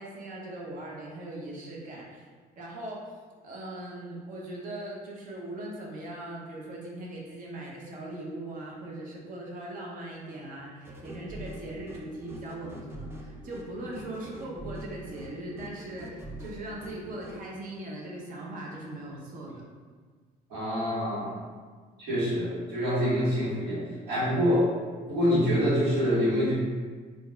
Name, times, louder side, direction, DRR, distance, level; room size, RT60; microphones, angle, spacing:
voice 1, 0.0-2.3 2.6-3.0 3.4-19.6, right 1 dB, 50° right, -3 dB, 0.7 m, -40 dB
sound 1, 10.8-17.4, equal, 15° right, 0.5 m, -43 dB
voice 2, 20.5-21.3 22.0-24.6 25.1-26.5, equal, 80° right, -9 dB, 1.4 m, -26 dB
3.8 x 2.4 x 2.2 m, 1.5 s
cardioid pair, 110°, 17 cm